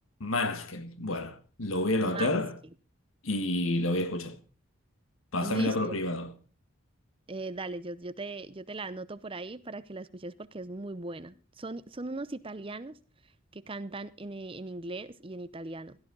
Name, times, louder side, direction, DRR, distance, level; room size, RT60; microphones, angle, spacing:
voice 1, 0.2-2.5 3.2-4.4 5.3-6.3, left 1 dB, 85° left, 1.6 m, -29 dB
voice 2, 2.0-2.4 5.4-6.0 7.3-13.0 13.5-16.0, right 2 dB, 25° right, 0.7 m, -39 dB
16.5 x 13.0 x 3.9 m
head